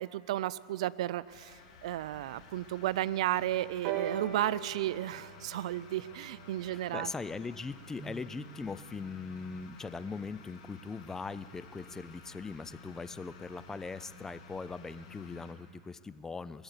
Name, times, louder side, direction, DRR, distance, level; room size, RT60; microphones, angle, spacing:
voice 1, 0.0-7.1, right 14 dB, 75° right, 20 dB, 0.4 m, -33 dB
sound 1, 1.2-15.5, left 3 dB, 75° left, 2.3 m, -53 dB
sound 2, 3.8-7.7 8.6-8.7, right 8 dB, 50° right, 1.0 m, -41 dB
voice 2, 6.6-16.6, left 4 dB, 15° left, 17 dB, 0.3 m, -40 dB
sound 3, 8.0-14.2, right 2 dB, 15° right, 1.1 m, -56 dB
20.5 x 8.0 x 8.1 m, 2.2 s
hypercardioid pair, 120°, 3 cm